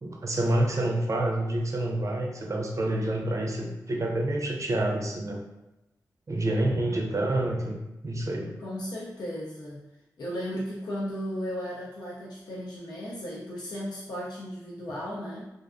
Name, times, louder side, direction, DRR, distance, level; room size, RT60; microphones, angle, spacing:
voice 1, 0.0-5.4 6.3-7.8 8.0-8.5, right 1 dB, 45° right, 1 dB, 0.5 m, -28 dB
voice 2, 8.6-9.8 10.2-15.4, equal, 75° left, -6 dB, 0.5 m, -35 dB
2.4 x 2.2 x 2.4 m, 0.93 s
cardioid pair, 45°, 7 cm